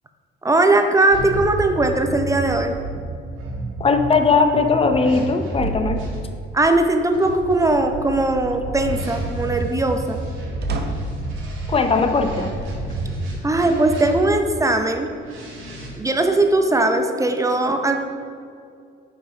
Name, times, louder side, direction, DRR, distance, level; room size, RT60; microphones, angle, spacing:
voice 1, 0.4-2.7 6.5-10.2 13.4-15.1 16.0-18.1, right 2 dB, 15° right, 6 dB, 0.6 m, -19 dB
sound 1, 1.1-6.2 7.1-14.5 15.2-15.9, right 2 dB, 85° right, 1.7 m, -30 dB
voice 2, 3.8-6.0 11.7-12.5, left 4 dB, 30° left, 7 dB, 0.6 m, -18 dB
sound 2, 10.6-11.3 12.3-12.9 13.5-13.6 14.9-15.6, right 3 dB, 55° right, 0.8 m, -35 dB
5.7 x 5.4 x 4.8 m, 2.3 s
cardioid pair, 90°, 20 cm